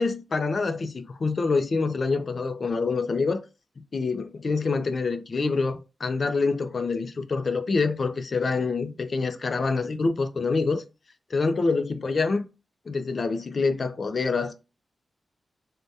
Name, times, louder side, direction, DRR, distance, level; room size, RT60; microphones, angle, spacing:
voice 1, 0.0-3.4 3.8-10.8 11.3-12.5 12.9-14.6, left 4 dB, 45° left, 0.3 m, -26 dB
3.3 x 2.1 x 2.6 m
wide cardioid pair, 155°, 0 cm